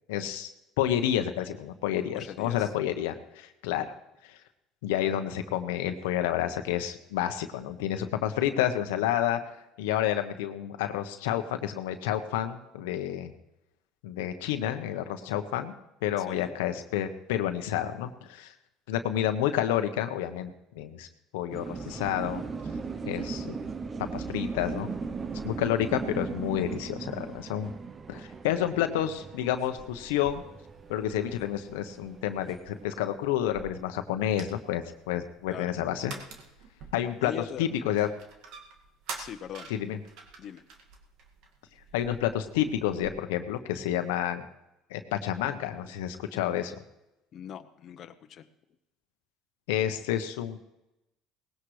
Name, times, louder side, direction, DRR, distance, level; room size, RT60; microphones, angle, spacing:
voice 1, 0.1-0.5 0.8-3.9 4.2-4.3 4.8-9.4 9.8-13.3 14.0-15.7 16.0-18.5 18.9-21.1 21.3-22.4 23.1-23.6 24.1-24.9 25.4-27.7 28.1-30.4 30.9-36.1 36.9-37.3 37.6-38.1 39.7-40.0 41.9-44.4 44.9-46.8 49.7-50.6, left 11 dB, 85° left, 7 dB, 1.0 m, -29 dB
voice 2, 2.1-2.7 16.2-16.5 35.5-35.7 37.2-37.7 39.2-39.7 40.4-40.6 47.3-48.5, left 9 dB, 50° left, 8 dB, 0.9 m, -41 dB
sound 1, 21.5-32.9, right 4 dB, 30° right, 0.8 m, -38 dB
sound 2, 29.8-43.1, right 4 dB, 70° right, 2.1 m, -48 dB
19.0 x 16.5 x 3.3 m, 0.91 s
supercardioid pair, 85°, 0 cm